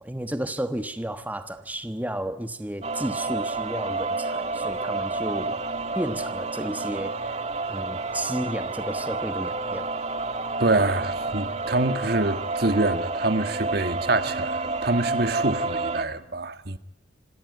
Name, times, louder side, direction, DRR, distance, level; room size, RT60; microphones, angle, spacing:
voice 1, 0.0-5.6 5.9-9.9, right 1 dB, 10° right, 1.2 m, -32 dB
sound 1, 2.8-16.0, right 3 dB, 35° right, 2.0 m, -29 dB
voice 2, 10.6-16.8, right 2 dB, 55° right, 1.6 m, -26 dB
27.0 x 17.5 x 9.6 m
head